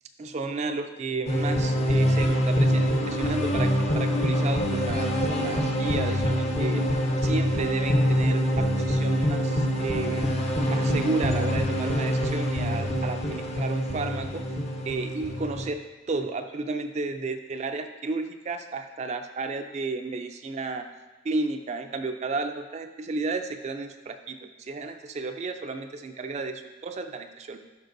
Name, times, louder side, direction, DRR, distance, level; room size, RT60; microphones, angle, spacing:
voice 1, 0.2-10.3 10.7-14.4 14.8-15.8 16.1-20.9 21.2-27.6, right 3 dB, 35° right, 7 dB, 0.4 m, -32 dB
sound 1, 1.3-15.7, equal, 35° left, 0.6 m, -25 dB
11.5 x 4.8 x 2.6 m, 1.2 s
head